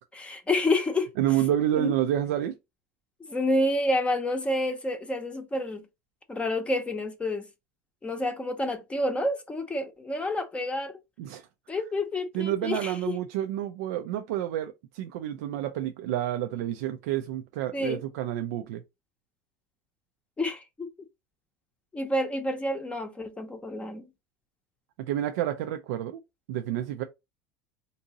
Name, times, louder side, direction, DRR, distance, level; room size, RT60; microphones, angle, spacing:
voice 1, 0.1-1.1 1.7-1.9 3.3-5.8 6.3-7.5 8.0-10.9 11.7-13.1 17.7-18.0 20.4-20.9 21.9-24.0, left 1 dB, 15° left, 0.6 m, -29 dB
voice 2, 1.2-2.5 11.2-11.5 12.3-18.8 25.0-26.2 26.5-27.0, right 12 dB, 85° right, 0.4 m, -29 dB
3.7 x 2.7 x 2.8 m
supercardioid pair, 120°, 8 cm